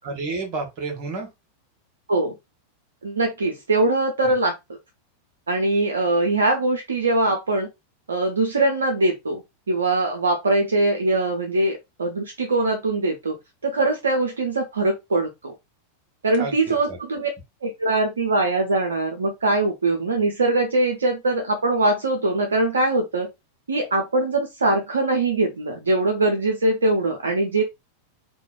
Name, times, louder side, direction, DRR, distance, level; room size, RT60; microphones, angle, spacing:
voice 1, 0.0-1.3 4.2-4.3 16.4-17.0, right 3 dB, 40° right, 0.9 m, -30 dB
voice 2, 3.0-4.6 5.5-7.7 8.1-9.4 9.7-13.4 13.6-15.5 16.2-17.3 17.6-23.3 23.7-27.6, right 2 dB, 70° right, 0.4 m, -22 dB
3.0 x 2.2 x 2.3 m
figure-of-eight pair, 90°, 0 cm